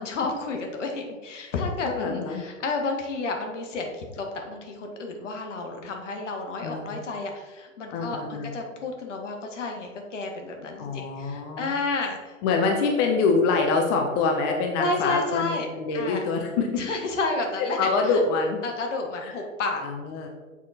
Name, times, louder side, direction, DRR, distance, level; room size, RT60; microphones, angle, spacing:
voice 1, 0.0-12.3 14.8-15.7 15.9-16.2 16.7-17.8 18.0-18.2 18.6-19.8, left 3 dB, 60° left, 3 dB, 1.5 m, -31 dB
voice 2, 1.8-2.4 6.6-7.0 7.9-8.5 10.8-11.7 12.4-16.8 17.8-18.6 19.2-19.3 19.8-20.3, left 4 dB, 20° left, 2 dB, 0.4 m, -25 dB
6.8 x 4.3 x 4.0 m, 1.3 s
figure-of-eight pair, 120°, 41 cm